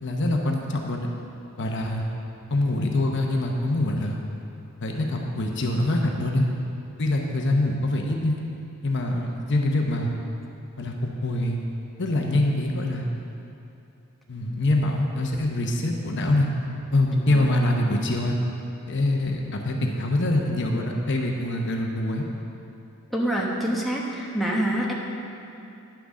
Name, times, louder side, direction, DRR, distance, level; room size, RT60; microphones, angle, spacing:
voice 1, 0.0-1.1 1.6-2.0 2.5-4.2 4.8-6.5 7.0-8.4 8.8-10.1 10.8-11.6 12.0-13.1 14.3-16.5 16.9-18.4 18.9-22.3, left 1 dB, 55° left, 1 dB, 0.9 m, -24 dB
voice 2, 23.1-24.9, right 1 dB, ahead, -4 dB, 1.1 m, -26 dB
10.0 x 6.0 x 6.2 m, 2.7 s
head